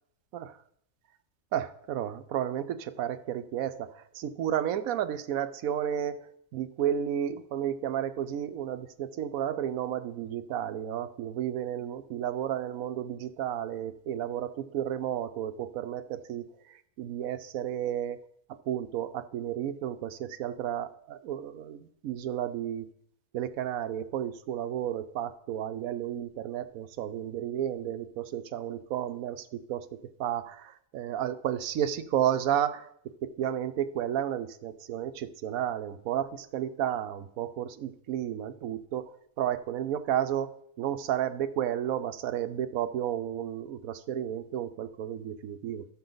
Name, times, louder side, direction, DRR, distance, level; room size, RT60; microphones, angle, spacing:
voice 1, 1.5-6.3 6.5-18.2 18.7-22.9 23.3-39.0 39.4-40.5 40.8-45.9, right 10 dB, 80° right, 11 dB, 1.1 m, -32 dB
12.5 x 7.1 x 3.9 m, 0.68 s
omnidirectional pair, 1.5 m